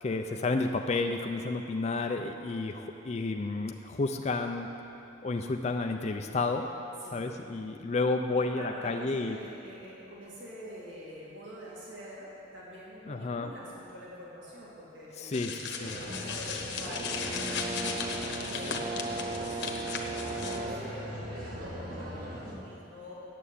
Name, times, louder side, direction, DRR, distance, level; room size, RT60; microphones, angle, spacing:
voice 1, 0.0-4.7 5.2-6.7 7.1-9.4 13.1-13.5 15.2-15.5 15.8-15.9, left 3 dB, 35° left, 4 dB, 0.4 m, -31 dB
voice 2, 7.0-7.4 8.3-17.5 17.8-18.0 18.4-23.2, equal, 65° right, -6 dB, 2.4 m, -46 dB
sound 1, 15.3-20.6, left 5 dB, 60° left, 1.1 m, -37 dB
sound 2, 15.8-22.5, equal, 45° right, 1.8 m, -40 dB
Brass instrument, 16.8-21.0, right 3 dB, 25° right, 0.4 m, -37 dB
9.3 x 7.7 x 8.4 m, 3.0 s
head